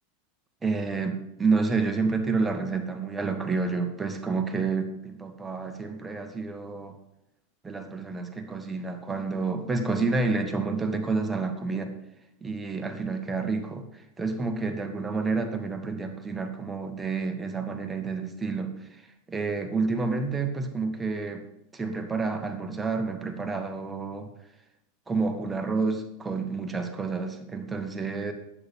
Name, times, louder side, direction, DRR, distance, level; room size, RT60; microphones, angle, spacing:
voice 1, 0.6-7.0 7.6-11.9 12.4-19.0 19.3-21.5 21.7-24.3 25.1-28.3, right 4 dB, 15° right, 5 dB, 1.7 m, -29 dB
11.0 x 8.7 x 5.5 m, 0.84 s
hypercardioid pair, 105°, 0 cm